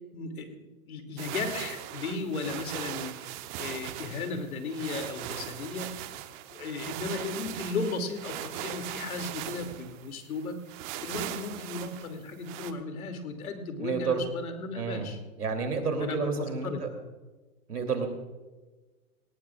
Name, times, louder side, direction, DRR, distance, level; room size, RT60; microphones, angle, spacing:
voice 1, 0.1-5.9 6.5-10.6 11.0-15.2 16.0-17.1, left 3 dB, 70° left, 6 dB, 2.6 m, -35 dB
sound 1, 1.2-12.7, right 13 dB, 35° right, 0.9 m, -39 dB
voice 2, 13.8-14.2 14.7-15.1 15.4-16.9 17.7-18.1, right 5 dB, 90° right, 5 dB, 2.9 m, -30 dB
18.5 x 18.0 x 2.4 m, 1.2 s
hypercardioid pair, 125°, 44 cm